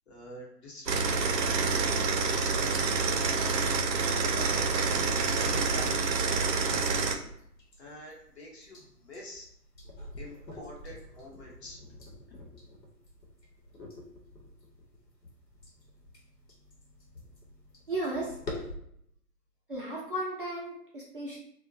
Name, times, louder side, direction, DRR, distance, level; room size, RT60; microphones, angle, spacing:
voice 1, 0.1-1.4 1.7-7.2 7.8-9.5 10.2-11.8 12.3-12.4, left 1 dB, 40° left, -3 dB, 0.9 m, -46 dB
sound 1, 0.9-7.2, right 4 dB, 85° right, 0.6 m, -27 dB
sound 2, 1.6-18.8, left 1 dB, 90° left, 1.0 m, -48 dB
voice 2, 17.9-18.3 19.7-21.4, right 1 dB, 35° right, -5 dB, 0.4 m, -34 dB
2.5 x 2.1 x 2.6 m, 0.71 s
figure-of-eight pair, 135°, 48 cm